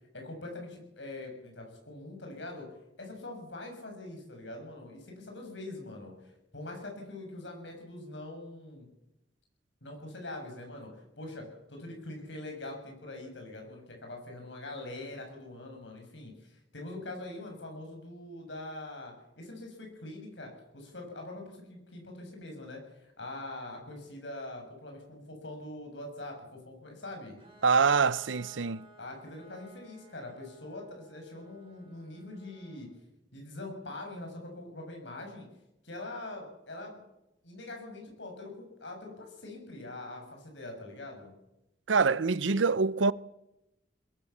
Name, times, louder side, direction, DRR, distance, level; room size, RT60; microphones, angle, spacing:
voice 1, 0.1-2.7 3.0-8.9 9.8-27.4 29.0-32.9 33.3-35.5 35.8-37.0 37.4-41.3, left 2 dB, 70° left, 7.6 m, -43 dB
Bowed string instrument, 27.4-33.0, right 2 dB, 30° right, 5.3 m, -57 dB
voice 2, 27.6-28.8 41.9-43.1, right 5 dB, 90° right, 0.7 m, -25 dB
21.5 x 21.0 x 7.3 m
head